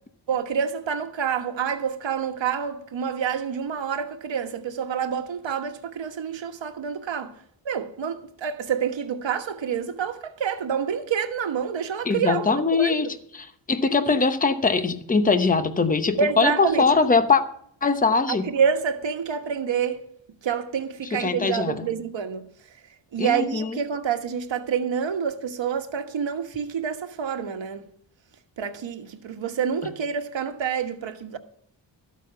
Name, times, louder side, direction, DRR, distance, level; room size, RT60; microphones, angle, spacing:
voice 1, 0.3-7.3 7.6-13.0 16.2-16.8 18.3-20.0 20.4-22.4 23.1-27.9 28.6-31.4, right 7 dB, 80° right, 1.4 m, -27 dB
voice 2, 12.0-13.1 13.3-17.4 17.8-18.5 21.1-21.9 23.2-23.8, left 4 dB, 20° left, 0.8 m, -22 dB
13.5 x 8.3 x 5.7 m
wide cardioid pair, 150°, 44 cm